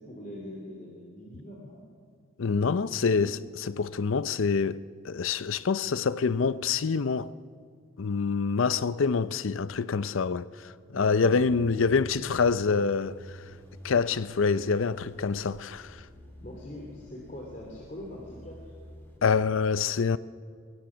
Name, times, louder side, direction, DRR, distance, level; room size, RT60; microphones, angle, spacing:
voice 1, 0.0-1.8 2.6-3.2 16.4-18.7, left 1 dB, 35° left, 3.0 m, -43 dB
voice 2, 2.4-7.3 8.0-13.4 13.8-16.1 19.2-20.2, left 5 dB, 70° left, 0.5 m, -26 dB
sound 1, 11.4-19.2, equal, 10° left, 3.0 m, -48 dB
22.5 x 21.5 x 6.2 m
head